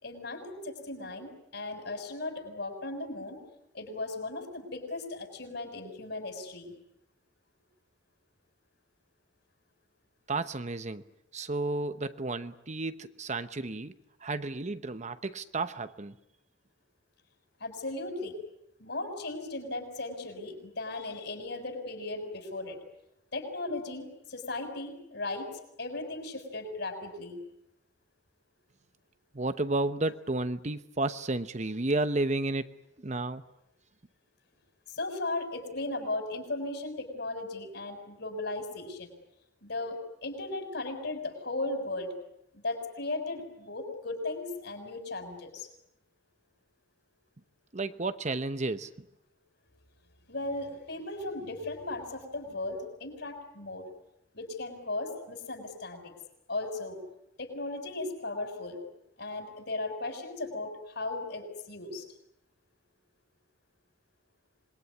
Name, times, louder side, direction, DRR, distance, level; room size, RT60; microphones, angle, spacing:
voice 1, 0.0-3.4 3.7-6.7 17.6-18.4 18.8-22.8 23.3-25.5 25.8-27.4 34.9-39.1 39.6-42.1 42.5-45.7 50.3-53.8 54.3-56.1 56.5-57.0 57.4-58.8 59.2-62.1, left 2 dB, 60° left, 5 dB, 6.6 m, -36 dB
voice 2, 10.3-11.0 11.3-14.0 14.2-16.1 29.3-32.7 33.0-33.4 47.7-48.9, right 2 dB, 35° right, 11 dB, 0.9 m, -32 dB
27.0 x 21.5 x 9.7 m, 0.84 s
head